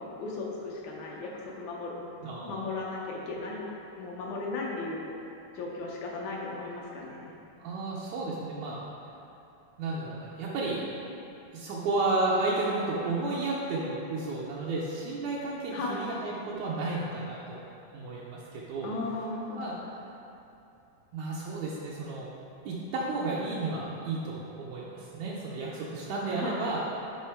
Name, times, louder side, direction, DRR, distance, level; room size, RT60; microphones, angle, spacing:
voice 1, 0.0-2.0 2.5-3.6 4.0-5.0 5.6-7.3 15.7-16.0 18.8-19.7 26.3-26.7, left 3 dB, 70° left, -3 dB, 2.1 m, -36 dB
voice 2, 2.2-2.6 7.6-8.8 9.8-10.8 11.5-17.6 17.9-18.9 19.6-19.8 21.1-22.3 22.7-26.8, right 3 dB, 75° right, -5 dB, 1.9 m, -32 dB
10.5 x 4.0 x 4.5 m, 2.8 s
omnidirectional pair, 3.8 m